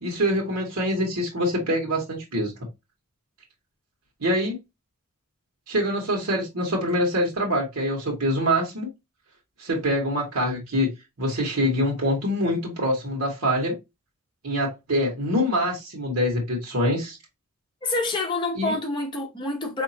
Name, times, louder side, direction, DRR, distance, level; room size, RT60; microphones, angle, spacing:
voice 1, 0.0-2.5 4.2-4.6 5.7-8.9 9.6-10.9 11.2-13.8 14.4-17.2 18.5-18.8, equal, 80° right, 1.3 m, -25 dB
voice 2, 17.8-19.8, left 2 dB, 20° left, 0.8 m, -27 dB
4.0 x 2.8 x 2.7 m
head